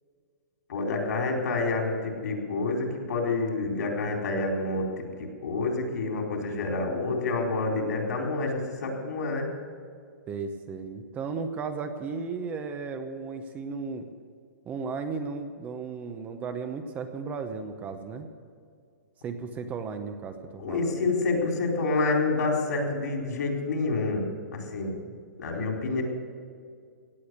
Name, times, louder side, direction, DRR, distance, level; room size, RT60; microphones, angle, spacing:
voice 1, 0.7-9.5 20.6-25.0 25.4-26.0, left 3 dB, 70° left, 1 dB, 4.1 m, -28 dB
voice 2, 10.3-14.1 14.7-18.3 19.2-21.0 25.0-25.1, right 5 dB, 15° right, 7 dB, 0.8 m, -35 dB
17.5 x 8.4 x 8.1 m, 2.2 s
hypercardioid pair, 160°, 10 cm